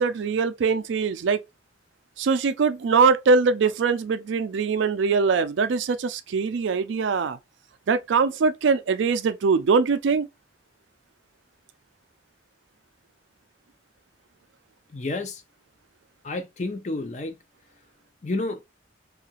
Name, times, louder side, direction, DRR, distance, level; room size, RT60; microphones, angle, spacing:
voice 1, 0.0-1.4 2.2-7.4 7.9-10.3, right 5 dB, 80° right, 0.4 m, -22 dB
voice 2, 14.9-15.4 16.2-17.4 18.2-18.6, left 2 dB, 40° left, 0.5 m, -30 dB
2.8 x 2.4 x 2.8 m
head